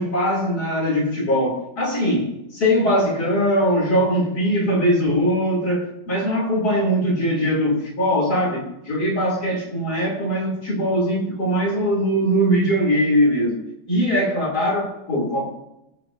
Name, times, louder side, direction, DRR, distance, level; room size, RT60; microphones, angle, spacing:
voice 1, 0.0-13.6 13.9-15.5, equal, 60° left, -3 dB, 3.2 m, -21 dB
18.0 x 7.8 x 2.6 m, 0.86 s
omnidirectional pair, 1.9 m